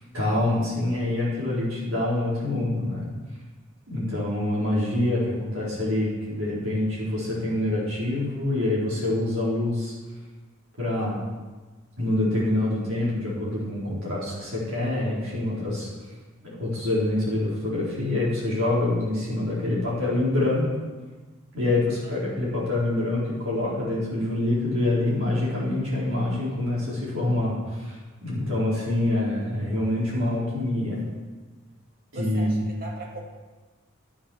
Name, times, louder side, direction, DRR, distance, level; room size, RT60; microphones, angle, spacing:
voice 1, 0.0-3.1 3.9-9.9 10.8-11.2 12.0-15.9 16.4-20.6 21.5-31.0 32.1-32.6, left 1 dB, 70° right, -7 dB, 4.5 m, -26 dB
voice 2, 22.0-22.4 32.1-33.2, right 2 dB, 45° right, -1 dB, 2.2 m, -40 dB
11.0 x 7.2 x 6.5 m, 1.3 s
head